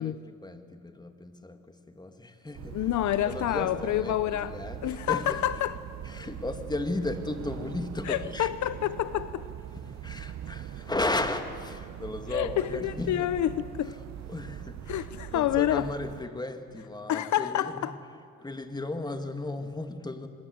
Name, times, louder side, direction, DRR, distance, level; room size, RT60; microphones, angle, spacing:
voice 1, 0.0-2.9 3.2-5.4 6.0-8.5 9.7-13.3 13.8-17.9 18.4-20.3, left 2 dB, 15° left, 2.0 m, -35 dB
sound 1, 2.5-16.2, right 11 dB, 65° right, 1.0 m, -42 dB
voice 2, 2.7-4.5 4.8-5.8 8.1-9.4 12.3-13.5 13.8-13.9 14.9-15.9 17.1-17.9, left 12 dB, 70° left, 0.8 m, -28 dB
25.0 x 21.5 x 8.1 m
cardioid pair, 90°, 30 cm